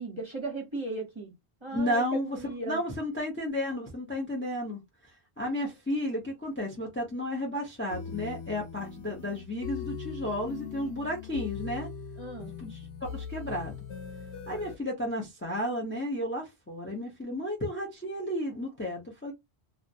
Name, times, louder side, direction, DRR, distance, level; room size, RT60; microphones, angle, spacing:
voice 1, 0.0-1.3 1.6-2.0 2.3-2.8 12.2-12.5, right 3 dB, 30° right, 0.8 m, -36 dB
voice 2, 1.7-2.4 2.7-4.8 5.4-11.9 12.6-12.8 13.1-13.8 14.5-19.3, left 1 dB, 15° left, 0.6 m, -32 dB
sound 1, 7.9-14.8, left 6 dB, 85° left, 1.0 m, -40 dB
2.3 x 2.1 x 2.7 m
omnidirectional pair, 1.1 m